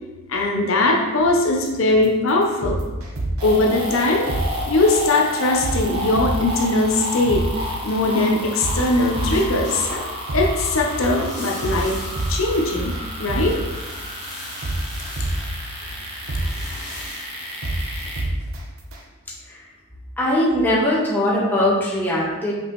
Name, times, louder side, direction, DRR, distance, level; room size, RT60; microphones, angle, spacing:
voice 1, 0.3-2.8 3.4-4.3 4.7-7.5 7.8-9.9 10.3-12.0 12.3-12.9 13.2-13.6, left 2 dB, 65° left, 0 dB, 0.7 m, -20 dB
sound 1, 1.9-2.0 2.4-3.5 3.9-4.0 4.3-4.4 4.9-5.1 5.4-5.8 6.2-6.6 6.9-7.0 7.3-7.4 7.9-8.1 8.4-9.5 9.9-10.0 10.3-10.4 10.9-11.1 11.4-11.8 12.2-13.0 13.3-13.4 13.9-14.0 14.4-15.5 15.9-16.0 16.3-16.4 16.9-17.0 17.4-17.8 18.2-18.6 18.9-19.0, right 2 dB, 75° right, 0.9 m, -26 dB
sound 2, 3.4-18.2, equal, 25° right, 1.2 m, -31 dB
sound 3, 7.7-18.5, left 2 dB, 35° left, 2.0 m, -41 dB
voice 2, 20.2-22.5, left 1 dB, 10° left, -7 dB, 1.3 m, -20 dB
6.1 x 5.3 x 3.1 m, 1.2 s
head